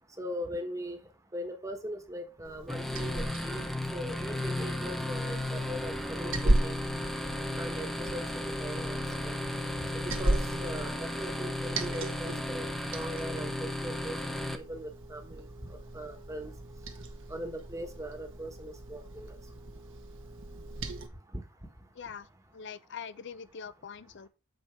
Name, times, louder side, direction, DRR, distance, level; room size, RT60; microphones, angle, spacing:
voice 1, 0.2-1.0 1.3-3.6 3.9-6.8 7.6-9.3 9.8-10.4 10.6-14.2 14.5-16.5 17.3-19.4 21.3-21.4, equal, 15° right, 1.2 m, -40 dB
Liquid, 2.5-21.1, right 1 dB, 60° right, 1.3 m, -36 dB
sound 1, 2.7-14.6, left 1 dB, ahead, 0.7 m, -34 dB
voice 2, 22.0-22.3 22.5-24.3, left 6 dB, 55° left, 0.5 m, -43 dB
7.8 x 4.5 x 4.5 m
head